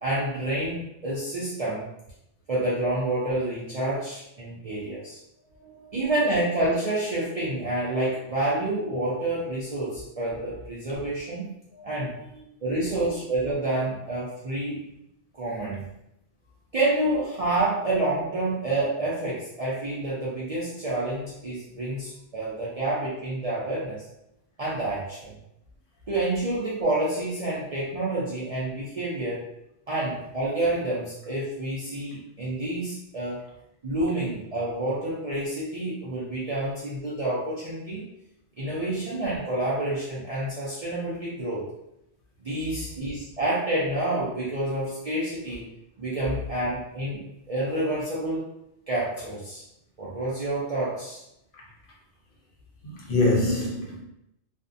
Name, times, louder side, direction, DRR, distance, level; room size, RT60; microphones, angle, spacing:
voice 1, 0.0-1.9 2.5-5.2 5.9-11.5 11.8-12.2 12.6-14.9 15.3-15.8 16.7-24.1 24.6-25.3 26.1-29.4 29.9-33.4 33.8-38.0 38.6-41.6 42.4-45.7 46.0-48.5 48.9-49.6 50.0-51.2, right 2 dB, 45° right, -8 dB, 0.5 m, -28 dB
voice 2, 5.5-6.1 11.7-11.8 12.2-12.3 12.7-13.2 51.5-51.6 52.8-54.0, left 2 dB, 55° left, -4 dB, 0.8 m, -27 dB
2.5 x 2.1 x 2.5 m, 0.82 s
omnidirectional pair, 1.2 m